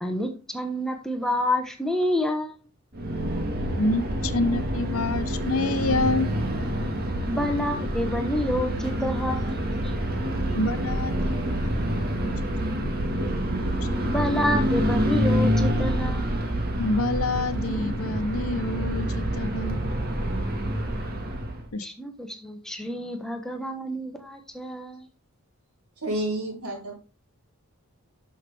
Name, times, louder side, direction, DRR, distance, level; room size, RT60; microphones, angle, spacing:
voice 1, 0.0-2.6 7.3-9.9 14.0-16.2 21.8-25.1, left 1 dB, ahead, 4 dB, 1.2 m, -28 dB
sound 1, 2.9-21.7, equal, 45° right, 1.8 m, -27 dB
voice 2, 3.7-6.3 10.5-12.3 16.8-19.8 21.7-21.9, left 2 dB, 75° left, 10 dB, 1.0 m, -28 dB
voice 3, 26.0-26.9, right 1 dB, 85° right, 0 dB, 3.9 m, -29 dB
12.0 x 6.4 x 3.5 m, 0.32 s
head